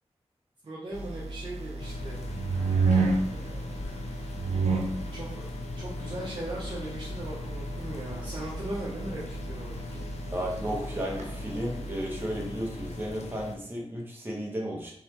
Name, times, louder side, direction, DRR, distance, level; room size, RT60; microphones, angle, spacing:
voice 1, 0.6-2.2 3.0-4.1 5.1-10.1, right 1 dB, 45° right, -6 dB, 0.7 m, -39 dB
sound 1, 0.9-13.2, right 3 dB, 85° right, 0.6 m, -32 dB
sound 2, 1.8-13.6, left 3 dB, 80° left, 0.4 m, -41 dB
voice 2, 10.3-14.9, equal, 20° right, -2 dB, 0.8 m, -34 dB
3.8 x 3.0 x 3.0 m, 0.69 s
wide cardioid pair, 115°, 11 cm